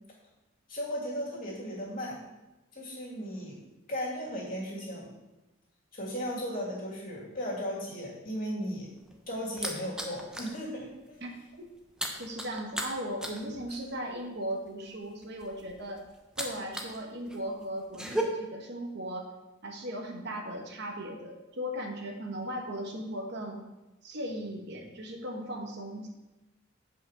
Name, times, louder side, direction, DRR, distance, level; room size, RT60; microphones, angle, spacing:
voice 1, 0.7-2.2 2.7-3.6 3.9-5.1 5.9-8.9 9.3-11.2, equal, 45° left, -5 dB, 2.7 m, -36 dB
sound 1, 8.8-10.6 10.9-11.1 11.4-17.0 17.3-18.2, right 1 dB, 5° right, 0.7 m, -37 dB
voice 2, 12.1-16.0 16.4-19.3 19.6-23.6 24.0-26.1, equal, 55° right, 2 dB, 1.2 m, -37 dB
8.5 x 5.1 x 5.0 m, 1.0 s
head